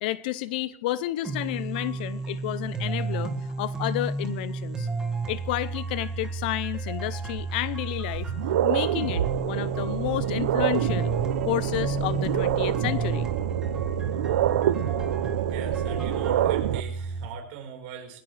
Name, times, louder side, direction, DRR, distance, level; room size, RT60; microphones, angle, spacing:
voice 1, 0.0-4.9 5.3-8.3 8.6-11.2 11.5-13.3, left 15 dB, 45° left, 0.5 m, -31 dB
sound 1, 1.2-17.3, right 3 dB, 10° right, 1.8 m, -32 dB
sound 2, 7.4-7.5 8.0-16.8, right 12 dB, 75° right, 0.6 m, -27 dB
voice 2, 15.5-18.2, right 8 dB, 45° right, 4.6 m, -41 dB
20.5 x 16.0 x 3.3 m
supercardioid pair, 175°, 7 cm